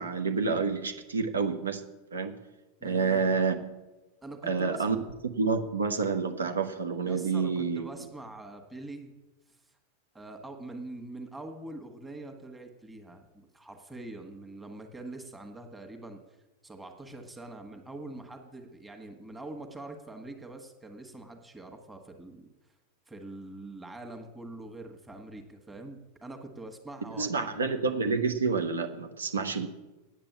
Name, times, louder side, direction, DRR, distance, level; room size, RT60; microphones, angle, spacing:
voice 1, 0.0-1.8 2.1-2.3 2.8-3.6 4.4-5.0 5.4-7.9 27.2-29.7, right 4 dB, 70° right, 6 dB, 1.0 m, -28 dB
voice 2, 2.8-3.3 4.2-4.9 7.1-9.2 10.1-16.2 16.6-22.5 23.1-27.5, right 2 dB, 10° right, 4 dB, 1.6 m, -44 dB
9.1 x 8.7 x 8.4 m, 1.1 s
figure-of-eight pair, 90°, 0 cm